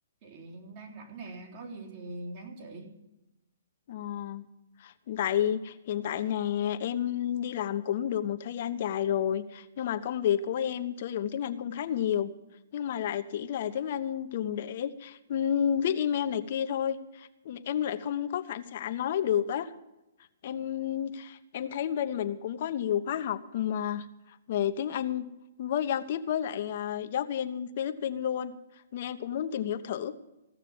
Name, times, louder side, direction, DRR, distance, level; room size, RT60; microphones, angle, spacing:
voice 1, 0.2-2.9, right 2 dB, 45° right, -1 dB, 3.7 m, -43 dB
voice 2, 3.9-4.4 4.8-12.3 12.7-19.7 20.4-24.1 24.5-25.3 25.6-28.5 28.9-30.1, left 9 dB, 50° left, 10 dB, 1.0 m, -30 dB
16.0 x 6.6 x 9.4 m, 0.95 s
hypercardioid pair, 140°, 0 cm